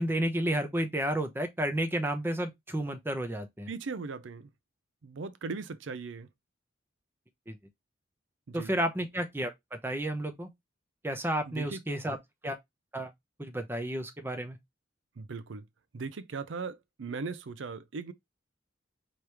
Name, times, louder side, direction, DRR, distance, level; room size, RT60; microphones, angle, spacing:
voice 1, 0.0-3.7 7.5-7.6 8.5-10.5 11.0-12.2 12.4-12.6 12.9-13.1 13.4-14.6, right 1 dB, 10° right, 0.8 m, -31 dB
voice 2, 3.7-4.5 5.0-6.3 8.5-8.7 11.5-11.8 15.2-15.6 15.9-18.1, right 4 dB, 80° right, 0.5 m, -38 dB
4.8 x 3.1 x 3.3 m
head